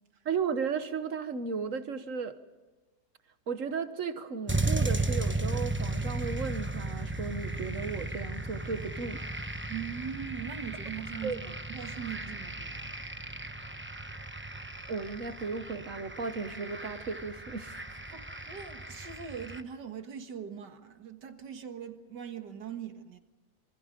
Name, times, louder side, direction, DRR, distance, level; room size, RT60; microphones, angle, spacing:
voice 1, 0.2-2.4 3.5-9.2 11.2-11.4 14.9-17.8, right 5 dB, 50° right, 1.6 m, -35 dB
sound 1, 4.5-19.6, right 2 dB, 10° right, 0.8 m, -35 dB
voice 2, 9.7-11.4 11.7-12.9 18.1-23.2, right 8 dB, 85° right, 2.3 m, -41 dB
27.0 x 25.0 x 5.3 m
omnidirectional pair, 1.8 m